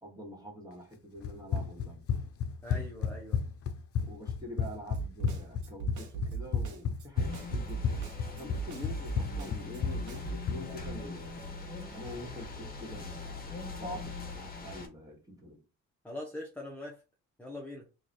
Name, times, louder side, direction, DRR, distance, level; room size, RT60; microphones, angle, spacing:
voice 1, 0.0-2.0 4.0-11.3 11.9-15.6, equal, 10° right, 1.7 m, -46 dB
Run, 1.2-10.7, left 6 dB, 50° left, 0.6 m, -32 dB
voice 2, 2.6-3.4 16.0-17.0 17.4-17.9, left 1 dB, 5° left, 0.8 m, -42 dB
Snare drum, 4.9-10.4, right 8 dB, 75° right, 1.1 m, -39 dB
sound 1, 7.2-14.9, left 3 dB, 30° left, 1.1 m, -42 dB
3.0 x 2.5 x 4.0 m
cardioid pair, 90°, 30 cm